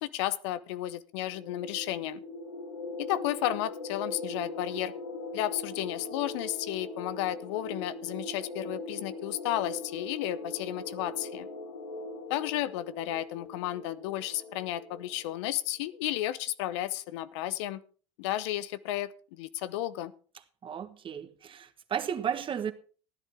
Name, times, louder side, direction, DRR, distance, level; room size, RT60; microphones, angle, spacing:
voice 1, 0.0-2.2 3.0-4.9 5.3-11.5 12.3-17.8 18.2-20.1, left 14 dB, 70° left, 0.8 m, -33 dB
sound 1, 1.1-15.5, left 2 dB, 85° left, 1.6 m, -41 dB
voice 2, 20.6-22.7, right 8 dB, 35° right, 1.4 m, -34 dB
15.5 x 10.5 x 3.6 m
hypercardioid pair, 80°, 16 cm